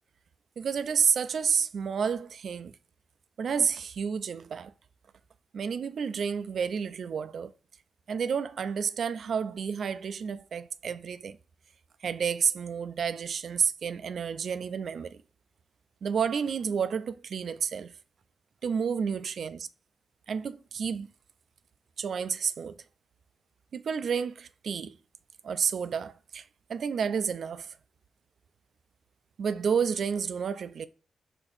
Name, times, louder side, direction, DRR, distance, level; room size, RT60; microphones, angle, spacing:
voice 1, 0.6-2.7 3.4-4.7 5.5-7.5 8.1-11.4 12.0-15.2 16.0-17.9 18.6-19.7 20.3-21.1 22.0-22.8 23.7-25.0 25.4-26.4 26.7-27.8 29.4-30.9, right 6 dB, 70° right, 0.3 m, -30 dB
4.4 x 2.8 x 3.9 m
cardioid pair, 80°, 0 cm